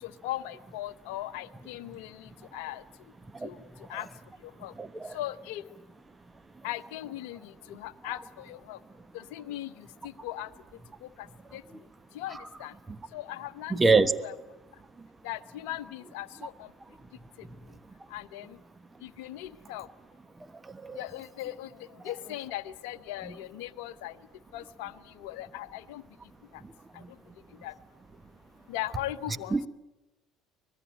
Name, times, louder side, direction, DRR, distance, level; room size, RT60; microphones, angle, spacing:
voice 1, 0.0-2.8 3.4-3.6 3.9-4.1 4.6-4.7 5.1-5.6 6.6-8.8 9.1-10.5 11.0-11.3 11.5-11.6 12.1-12.7 13.1-14.3 15.2-16.7 18.1-18.6 19.0-19.9 21.0-21.7 22.0-24.1 24.5-26.0 26.9-27.0 27.6-27.7 28.7-29.6, left 14 dB, 70° left, 15 dB, 0.8 m, -39 dB
voice 2, 4.8-5.2 12.9-13.0 13.7-14.1 20.8-21.0 27.0-27.1 29.5-29.7, right 3 dB, 20° right, 12 dB, 1.2 m, -24 dB
25.0 x 20.0 x 9.0 m, 1.1 s
figure-of-eight pair, 60°, 0 cm